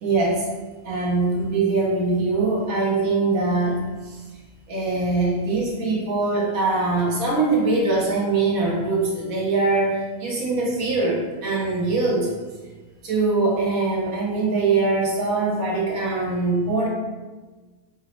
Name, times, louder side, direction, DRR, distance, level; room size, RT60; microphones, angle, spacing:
voice 1, 0.0-0.5 0.8-3.8 4.0-4.2 4.7-12.3 13.0-16.9, right 3 dB, 90° right, -3 dB, 1.4 m, -22 dB
4.7 x 2.1 x 4.1 m, 1.3 s
omnidirectional pair, 1.4 m